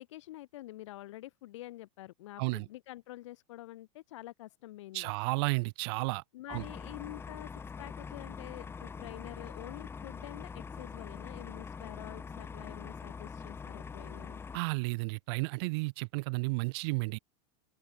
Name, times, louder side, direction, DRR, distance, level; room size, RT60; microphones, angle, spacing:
voice 1, 0.0-5.1 6.3-14.4, left 16 dB, 75° left, 7.6 m, -47 dB
voice 2, 4.9-6.2 6.5-6.6 14.5-17.2, right 28 dB, 55° right, 1.0 m, -32 dB
sound 1, 6.5-14.6, left 5 dB, 15° left, 4.0 m, -44 dB
open air
supercardioid pair, 145°, 15 cm